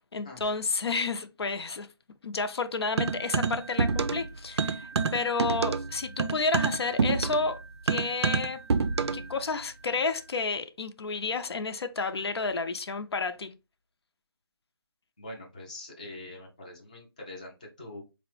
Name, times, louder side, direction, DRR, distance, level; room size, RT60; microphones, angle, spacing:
voice 1, 0.0-1.9 2.2-8.6 9.1-13.6, left 4 dB, 75° left, 0.5 m, -31 dB
sound 1, 3.0-4.3 4.6-9.3, right 5 dB, 85° right, 0.4 m, -27 dB
voice 2, 15.2-18.0, left 2 dB, 15° left, 0.4 m, -44 dB
4.3 x 2.0 x 3.0 m
hypercardioid pair, 175°, 14 cm